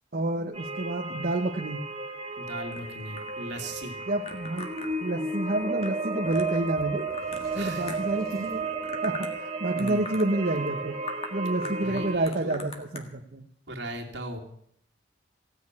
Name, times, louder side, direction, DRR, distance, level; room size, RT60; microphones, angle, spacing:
voice 1, 0.1-1.8 4.1-4.7 5.0-7.1 7.5-8.7 9.0-11.0 11.3-13.5, right 2 dB, 55° right, 2 dB, 0.9 m, -29 dB
sound 1, 0.5-12.2, right 3 dB, 30° right, 1.7 m, -33 dB
voice 2, 2.4-4.0 7.5-7.9 9.7-10.0 11.6-12.7 13.7-14.4, right 1 dB, 75° right, 1 dB, 2.5 m, -38 dB
sound 2, 2.7-8.3 8.6-9.4 9.6-10.3 10.7-10.8 11.0-11.3 11.6-13.0, left 3 dB, 35° left, 1.7 m, -42 dB
Sliding door, 6.6-6.7 7.1-9.4, left 1 dB, 55° left, 2.9 m, -50 dB
16.5 x 6.6 x 9.6 m, 0.68 s
head